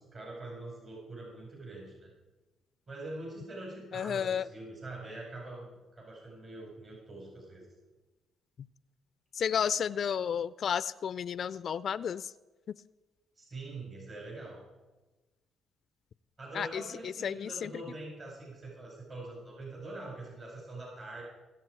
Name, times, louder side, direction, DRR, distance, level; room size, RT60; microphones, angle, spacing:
voice 1, 0.0-2.1 2.9-5.7 5.9-7.7 13.4-14.6 16.4-21.2, right 2 dB, 45° right, -3 dB, 4.7 m, -44 dB
voice 2, 3.9-4.5 9.3-12.3 12.7-12.8 16.5-17.8, left 8 dB, 60° left, 17 dB, 0.3 m, -32 dB
21.0 x 7.3 x 4.6 m, 1.2 s
cardioid pair, 90°, 0 cm